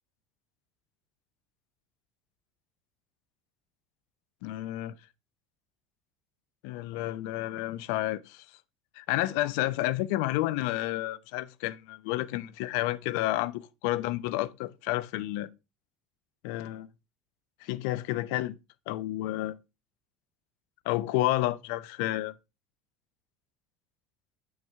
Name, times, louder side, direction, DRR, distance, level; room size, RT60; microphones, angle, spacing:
voice 1, 4.4-5.0 6.6-8.4 9.0-15.5 16.4-16.9 17.6-18.6 18.9-19.6 20.9-22.3, left 16 dB, 75° left, 0.5 m, -30 dB
7.0 x 6.4 x 3.4 m
supercardioid pair, 100°, 0 cm